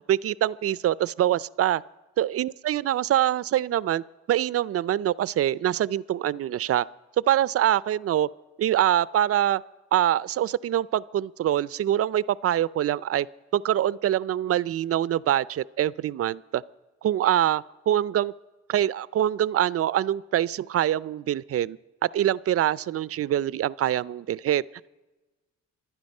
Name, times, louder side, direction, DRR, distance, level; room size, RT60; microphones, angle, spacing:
voice 1, 0.1-1.8 2.2-6.8 7.3-8.3 8.6-9.6 9.9-13.3 13.5-16.6 17.0-18.3 18.7-21.8 22.1-24.6, right 11 dB, 50° right, 19 dB, 0.5 m, -24 dB
25.5 x 10.0 x 5.4 m, 1.1 s
cardioid pair, 90°, 30 cm